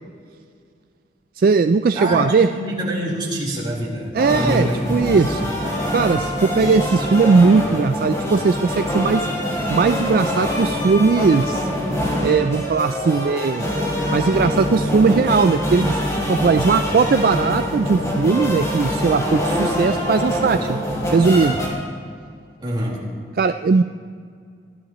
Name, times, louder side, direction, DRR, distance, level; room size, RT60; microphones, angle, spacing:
voice 1, 1.4-2.5 4.1-5.4 5.9-9.3 9.7-11.7 12.2-13.6 14.1-16.0 16.3-20.8 21.1-21.6 23.4-23.8, right 4 dB, 55° right, 9 dB, 0.3 m, -18 dB
voice 2, 1.9-5.4 22.6-23.1, equal, 25° right, -5 dB, 3.9 m, -26 dB
sound 1, 4.2-21.7, equal, 20° left, 3.4 m, -24 dB
22.5 x 15.0 x 3.1 m, 2.1 s
head